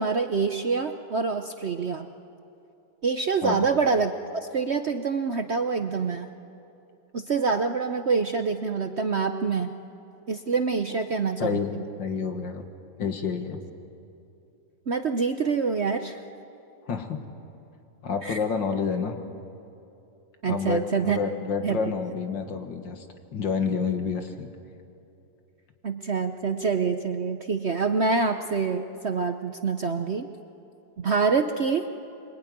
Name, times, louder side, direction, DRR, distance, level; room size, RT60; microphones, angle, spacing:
voice 1, 0.0-2.1 3.0-6.3 7.1-9.7 10.3-11.8 14.9-16.2 18.2-18.4 20.4-21.2 21.6-21.8 25.8-30.3 31.0-31.9, right 5 dB, 50° right, 7 dB, 0.8 m, -26 dB
voice 2, 11.4-11.7 12.0-12.6 13.0-13.6 16.9-17.2 18.0-19.2 20.5-23.1 23.3-24.5, left 5 dB, 75° left, 5 dB, 2.4 m, -29 dB
26.0 x 23.0 x 9.5 m, 2.7 s
omnidirectional pair, 2.0 m